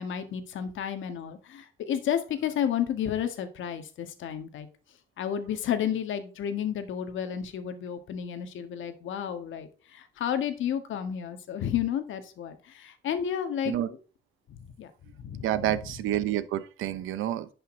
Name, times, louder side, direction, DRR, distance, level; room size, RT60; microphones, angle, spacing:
voice 1, 0.0-4.7 5.2-14.0 14.6-14.9 15.2-15.7, left 9 dB, 80° left, 1.7 m, -32 dB
voice 2, 15.4-17.5, right 12 dB, 85° right, 1.0 m, -29 dB
11.0 x 5.6 x 3.9 m
cardioid pair, 90°, 20 cm